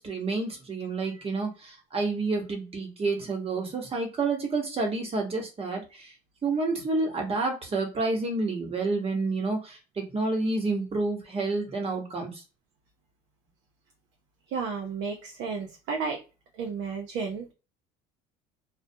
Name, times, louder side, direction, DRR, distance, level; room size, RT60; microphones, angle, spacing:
voice 1, 0.0-6.1 6.4-12.4, right 3 dB, 30° right, 1.0 m, -29 dB
voice 2, 14.5-16.2 16.5-17.5, right 5 dB, 65° right, 0.6 m, -32 dB
2.3 x 2.1 x 2.7 m
supercardioid pair, 100°, 19 cm